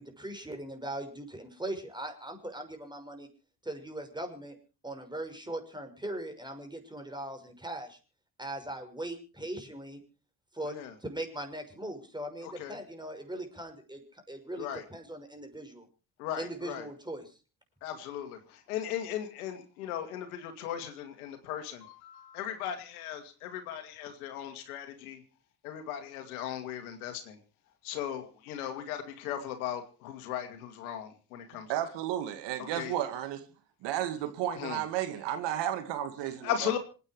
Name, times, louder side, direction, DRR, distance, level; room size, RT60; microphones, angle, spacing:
voice 1, 0.0-3.3 3.6-4.6 4.8-8.0 8.4-10.0 10.5-10.7 11.0-15.9 16.4-17.4, right 1 dB, 10° right, 6.1 m, -40 dB
voice 2, 12.4-12.8 14.6-14.8 16.2-16.9 17.8-25.2 25.6-27.4 27.8-31.9 32.6-32.9 34.5-34.8 36.4-36.8, left 10 dB, 90° left, 2.5 m, -37 dB
voice 3, 31.7-33.4 33.8-36.8, right 11 dB, 75° right, 2.2 m, -33 dB
27.0 x 9.6 x 4.7 m
hypercardioid pair, 50°, 43 cm